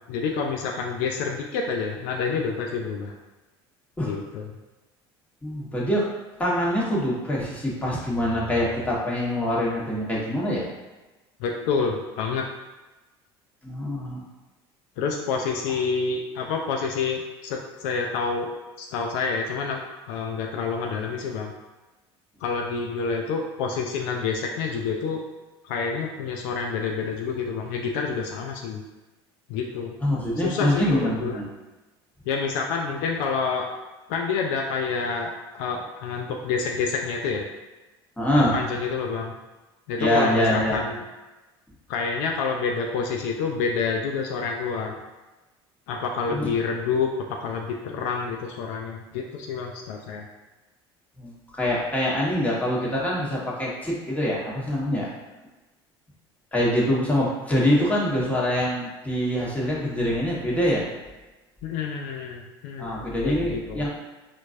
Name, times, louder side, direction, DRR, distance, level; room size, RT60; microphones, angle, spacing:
voice 1, 0.1-3.1 4.0-4.5 11.4-12.5 15.0-18.5 18.8-21.5 22.4-25.2 25.6-28.8 29.5-30.0 30.4-31.4 32.3-33.7 34.1-37.4 38.3-39.4 39.9-41.0 41.9-45.0 45.9-50.3 61.6-63.9, left 5 dB, 70° left, 1 dB, 0.4 m, -28 dB
voice 2, 5.4-6.1 6.4-10.6 13.6-14.2 30.0-31.4 38.2-38.6 40.0-40.8 46.3-46.5 51.2-55.1 56.5-60.8 62.8-63.9, equal, 10° left, -6 dB, 1.3 m, -24 dB
4.3 x 2.6 x 2.6 m, 1.1 s
hypercardioid pair, 75°, 13 cm